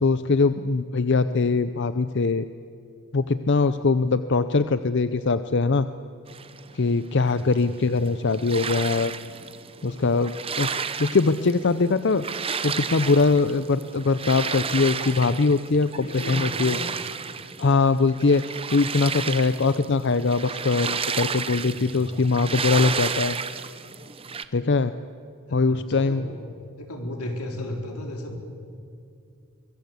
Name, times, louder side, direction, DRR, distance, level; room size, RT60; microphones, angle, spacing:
voice 1, 0.0-2.5 3.1-5.9 6.7-9.1 9.8-12.2 12.6-16.8 17.6-18.4 18.7-23.4 24.5-24.9 25.5-26.2, left 4 dB, 50° left, 12 dB, 0.6 m, -22 dB
sound 1, 6.3-24.4, right 6 dB, 25° right, 0.8 m, -32 dB
voice 2, 7.1-8.0 16.0-17.0 21.5-22.1 25.5-26.3 26.8-28.4, left 1 dB, 85° left, 2 dB, 4.4 m, -36 dB
24.0 x 23.0 x 8.1 m, 2.4 s
head